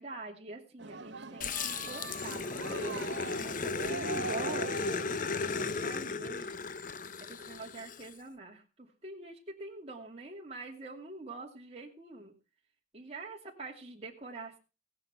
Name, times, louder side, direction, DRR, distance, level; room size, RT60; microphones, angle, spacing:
voice 1, 0.0-5.1 5.6-6.7 7.3-12.3 12.9-14.6, right 2 dB, 35° right, -1 dB, 2.7 m, -45 dB
sound 1, 0.8-6.6 7.0-7.1, right 3 dB, 80° right, 1.2 m, -42 dB
Growling, 1.4-8.1, left 4 dB, 50° left, 0.9 m, -35 dB
17.0 x 9.7 x 5.7 m, 0.33 s
head